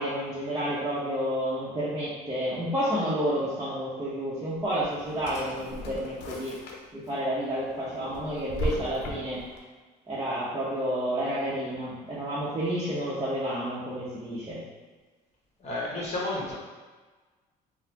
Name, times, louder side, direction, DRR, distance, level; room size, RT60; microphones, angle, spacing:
voice 1, 0.0-6.6 6.9-9.4 10.1-14.6, equal, 25° right, -10 dB, 0.8 m, -30 dB
Drawer open or close, 4.5-7.1 7.5-9.6, left 1 dB, 90° left, 0.6 m, -37 dB
voice 2, 15.6-16.6, left 2 dB, 40° left, -6 dB, 1.3 m, -31 dB
4.0 x 2.1 x 2.8 m, 1.3 s
cardioid pair, 110°, 17 cm